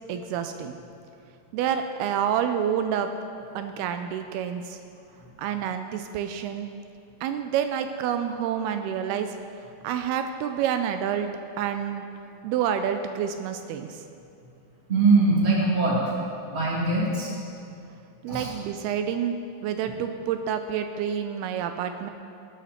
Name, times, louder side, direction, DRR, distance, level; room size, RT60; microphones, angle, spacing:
voice 1, 0.1-0.8 1.5-3.1 3.6-4.8 5.4-6.7 7.2-9.3 9.8-11.3 11.6-12.0 12.4-14.0 18.2-19.4 19.6-22.1, right 8 dB, 85° right, 7 dB, 2.5 m, -28 dB
voice 2, 14.9-16.0 16.5-17.3 18.3-18.5, right 3 dB, 20° right, -5 dB, 2.1 m, -22 dB
18.0 x 9.2 x 4.4 m, 2.6 s
omnidirectional pair, 4.6 m